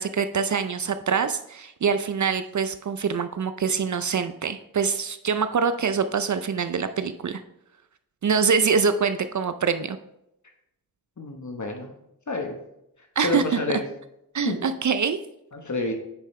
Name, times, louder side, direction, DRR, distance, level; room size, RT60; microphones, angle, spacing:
voice 1, 0.0-7.4 8.2-10.0 13.2-13.4 14.3-15.2, right 6 dB, 50° right, 10 dB, 0.5 m, -24 dB
voice 2, 11.2-11.9 12.3-12.6 13.2-13.8 14.4-14.6 15.5-15.9, left 3 dB, 50° left, 3 dB, 1.2 m, -28 dB
9.4 x 5.4 x 3.2 m, 0.82 s
cardioid pair, 50°, 38 cm